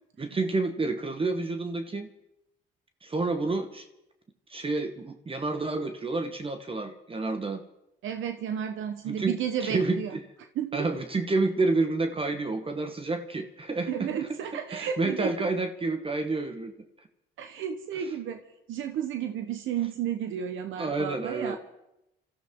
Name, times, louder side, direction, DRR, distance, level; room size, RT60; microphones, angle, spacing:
voice 1, 0.2-2.1 3.0-3.8 4.5-7.6 9.1-9.3 9.6-10.2 10.7-14.1 14.7-16.7 20.8-21.6, right 3 dB, 25° right, 7 dB, 1.1 m, -29 dB
voice 2, 8.0-10.2 10.5-10.9 13.9-15.3 17.4-18.4 18.7-21.6, right 9 dB, 80° right, 7 dB, 1.1 m, -32 dB
26.5 x 14.0 x 3.7 m, 0.89 s
cardioid pair, 90°, 20 cm